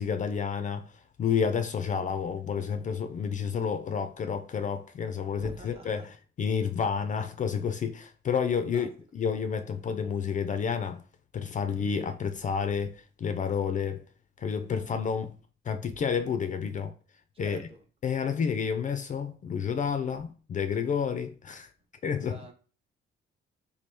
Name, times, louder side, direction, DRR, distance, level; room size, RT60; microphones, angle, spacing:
voice 1, 0.0-11.0 11.3-14.0 14.4-15.4 15.6-16.9 17.4-17.6 18.0-21.7 22.0-22.5, left 6 dB, 40° left, 0.4 m, -30 dB
voice 2, 5.4-6.1 8.5-8.9 17.3-17.8 22.2-22.5, right 2 dB, 30° right, 0.8 m, -46 dB
3.0 x 2.3 x 3.3 m
cardioid pair, 90°, 20 cm